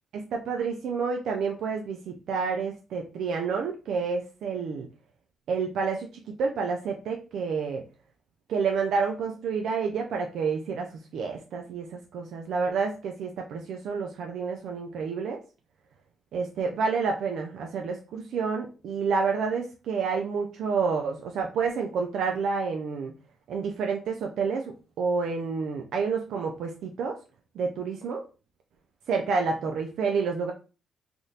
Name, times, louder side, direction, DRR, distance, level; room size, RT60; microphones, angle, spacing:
voice 1, 0.1-4.9 5.5-7.8 8.5-15.4 16.3-23.1 23.5-27.2 27.6-28.2 29.1-30.5, right 5 dB, 75° right, 2 dB, 0.4 m, -29 dB
3.5 x 2.4 x 2.7 m, 0.33 s
cardioid pair, 90°, 0 cm